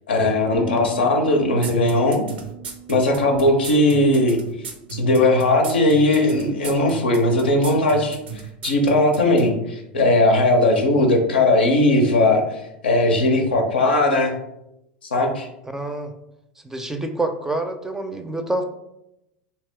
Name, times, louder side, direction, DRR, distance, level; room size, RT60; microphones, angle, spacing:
voice 1, 0.1-2.2 2.9-4.4 4.9-8.2 8.6-14.4 15.1-15.5, left 2 dB, 85° left, 2 dB, 0.6 m, -18 dB
Bass guitar, 0.5-6.8, right 3 dB, 25° left, 0.7 m, -41 dB
sound 1, 1.6-9.5, right 7 dB, 80° right, 0.5 m, -34 dB
voice 2, 15.7-16.1 16.6-18.6, right 2 dB, 10° right, 6 dB, 0.4 m, -27 dB
2.8 x 2.3 x 3.3 m, 0.85 s
hypercardioid pair, 85°, 5 cm